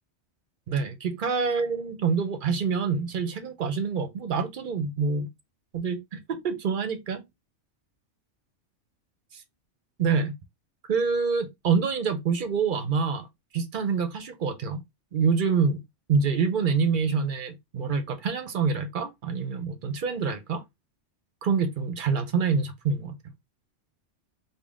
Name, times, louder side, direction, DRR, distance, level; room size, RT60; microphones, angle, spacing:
voice 1, 0.7-5.3 5.7-7.2 10.0-10.3 10.9-13.3 13.5-14.8 15.1-15.8 16.1-20.6 21.4-23.2, right 5 dB, 55° right, 0.7 m, -26 dB
3.6 x 2.2 x 3.5 m
omnidirectional pair, 1.2 m